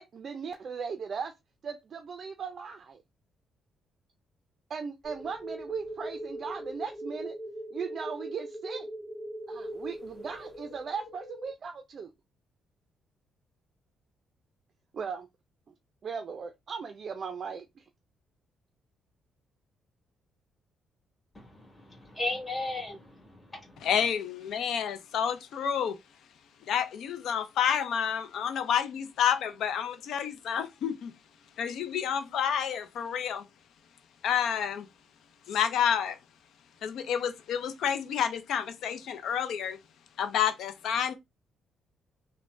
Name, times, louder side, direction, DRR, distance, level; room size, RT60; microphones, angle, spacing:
voice 1, 0.0-1.3 1.6-3.0 4.7-7.4 7.7-8.9 9.5-12.1 14.9-15.3 16.0-17.8, right 6 dB, 50° right, 0.4 m, -38 dB
sound 1, 5.0-11.5, right 1 dB, 45° left, 2.1 m, -40 dB
voice 2, 21.3-23.9, left 2 dB, 15° left, 1.8 m, -36 dB
voice 3, 23.8-26.0 26.7-31.1 31.6-33.5 34.2-34.9 35.5-36.2 36.8-39.8 40.2-41.1, left 8 dB, 75° left, 0.5 m, -29 dB
3.3 x 2.1 x 2.5 m
cardioid pair, 90°, 0 cm